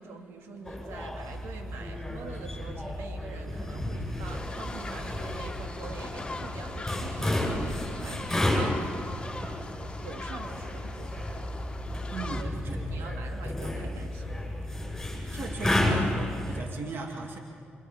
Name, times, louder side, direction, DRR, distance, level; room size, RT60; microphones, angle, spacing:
voice 1, 0.0-9.0 9.4-11.3 12.4-14.5, right 4 dB, 90° right, 3 dB, 2.9 m, -45 dB
sound 1, 0.6-16.6, left 1 dB, 5° left, 7.9 m, -32 dB
sound 2, 1.3-14.9, right 3 dB, 40° right, 5.3 m, -46 dB
sound 3, 4.2-12.4, left 2 dB, 25° left, 2.1 m, -40 dB
voice 2, 12.1-12.8 15.3-17.4, right 3 dB, 65° right, 1 dB, 2.7 m, -37 dB
29.0 x 26.5 x 5.4 m, 2.2 s
cardioid pair, 80°, 4 cm